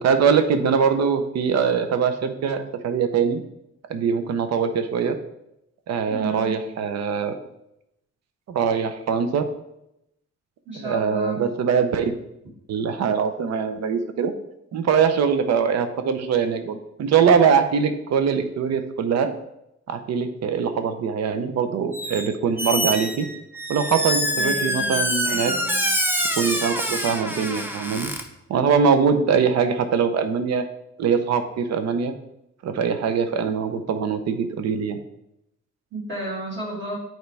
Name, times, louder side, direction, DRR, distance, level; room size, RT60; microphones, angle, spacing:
voice 1, 0.0-3.4 3.9-5.2 5.9-7.4 8.5-9.5 10.8-12.1 12.7-14.3 14.7-19.3 19.9-23.3 23.7-25.5 26.4-28.1 28.5-30.7 31.0-32.1 32.6-35.0, right 6 dB, 65° right, 9 dB, 0.7 m, -22 dB
voice 2, 6.1-6.6 10.7-11.4 24.3-25.0 25.3-25.9 35.9-37.0, right 2 dB, 40° right, -5 dB, 2.7 m, -32 dB
Squeak, 21.9-22.3 22.6-28.2, equal, 5° right, 0.6 m, -25 dB
9.2 x 4.5 x 3.4 m, 0.83 s
cardioid pair, 140°, 29 cm